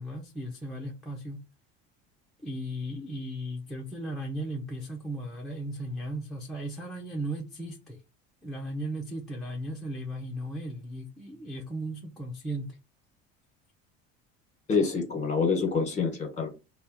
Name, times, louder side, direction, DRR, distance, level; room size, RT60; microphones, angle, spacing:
voice 1, 0.0-1.4 2.4-8.0 8.4-12.8, right 1 dB, ahead, 0.6 m, -36 dB
voice 2, 14.7-16.5, left 5 dB, 25° left, 1.4 m, -26 dB
3.5 x 2.3 x 4.2 m
cardioid pair, 135°, 29 cm